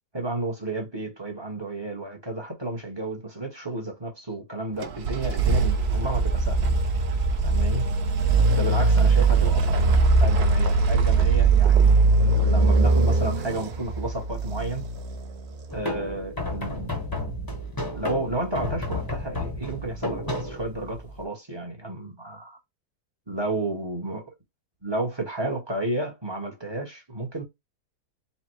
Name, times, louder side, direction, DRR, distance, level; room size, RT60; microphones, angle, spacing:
voice 1, 0.1-6.7 7.4-7.9 8.5-14.8 15.7-16.9 17.9-22.6 23.3-24.2 24.8-27.4, right 2 dB, 20° right, 0.9 m, -32 dB
sound 1, 4.8-15.6, right 3 dB, 55° right, 0.8 m, -21 dB
sound 2, 15.7-21.2, left 1 dB, 15° left, 0.8 m, -32 dB
4.2 x 2.2 x 4.5 m
omnidirectional pair, 1.8 m